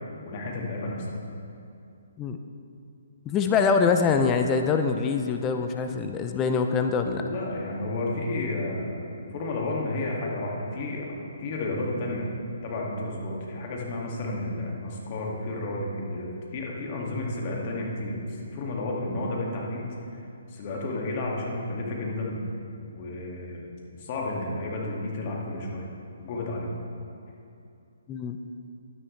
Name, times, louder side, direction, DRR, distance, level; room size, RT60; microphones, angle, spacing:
voice 1, 0.3-1.0 7.1-12.3 12.6-18.2 18.5-20.2 20.5-22.4 22.9-23.7 24.0-25.9 26.2-26.7, left 2 dB, 40° left, -2 dB, 2.1 m, -32 dB
voice 2, 3.3-7.2 28.1-28.4, left 5 dB, 20° left, 6 dB, 0.5 m, -24 dB
12.0 x 9.9 x 3.3 m, 2.6 s
hypercardioid pair, 140°, 0 cm